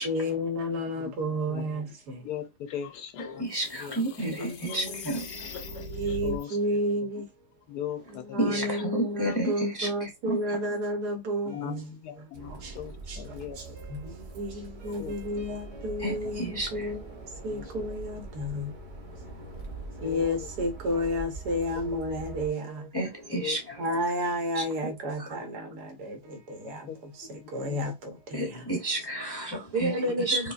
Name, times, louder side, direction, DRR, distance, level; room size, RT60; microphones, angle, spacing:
voice 1, 0.0-2.3 4.2-5.0 5.3-7.3 8.1-11.9 12.2-12.8 13.1-19.3 19.9-22.9 23.8-28.6 29.7-30.5, equal, 70° right, 1.5 m, -32 dB
voice 2, 2.2-3.4 3.7-4.0 4.3-4.4 6.2-6.6 7.2-7.3 7.7-8.8 11.5-13.8 15.0-15.5 17.5-17.9 20.0-20.5 23.3-23.7 26.6-27.9 30.0-30.2, left 10 dB, 70° left, 1.1 m, -39 dB
sound 1, 2.7-6.4, left 3 dB, 90° left, 1.4 m, -40 dB
voice 3, 3.4-5.8 8.4-10.4 16.0-16.9 19.2-20.0 22.9-23.6 25.2-25.3 28.3-29.9 30.3-30.5, right 2 dB, 20° left, 0.6 m, -32 dB
sound 2, 12.3-22.5, right 3 dB, 50° right, 0.5 m, -43 dB
5.0 x 2.2 x 2.4 m
omnidirectional pair, 1.8 m